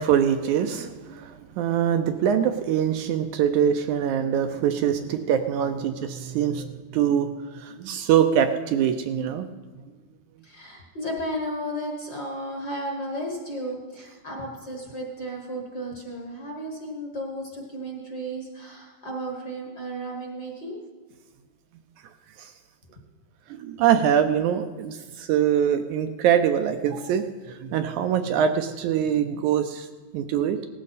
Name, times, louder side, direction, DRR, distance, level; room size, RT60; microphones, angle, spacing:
voice 1, 0.0-9.5 22.4-22.5 23.5-29.9 30.1-30.6, right 9 dB, 75° right, 7 dB, 1.9 m, -23 dB
voice 2, 10.4-20.8, equal, 40° left, 0 dB, 1.7 m, -34 dB
18.0 x 14.0 x 4.1 m, 1.4 s
omnidirectional pair, 3.7 m